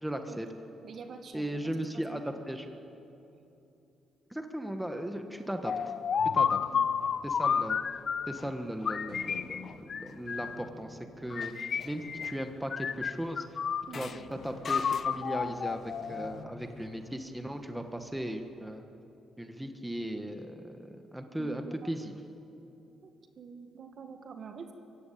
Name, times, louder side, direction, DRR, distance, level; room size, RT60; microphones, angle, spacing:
voice 1, 0.0-0.5 1.3-2.7 4.3-5.7 6.3-6.6 7.2-7.8 8.3-13.4 13.9-18.8 19.4-22.1, right 1 dB, 5° right, 5 dB, 1.5 m, -37 dB
voice 2, 0.8-2.4 6.6-6.9 13.9-14.3 21.4-22.0 23.0-24.7, right 5 dB, 55° right, 6 dB, 2.0 m, -47 dB
sound 1, 5.7-8.4 8.9-10.7 11.3-12.4 12.7-14.2 14.6-16.4, left 7 dB, 50° left, 0.6 m, -31 dB
sound 2, 6.2-18.5, left 5 dB, 85° left, 1.8 m, -52 dB
23.0 x 15.5 x 8.7 m, 2.9 s
cardioid pair, 90°, 0 cm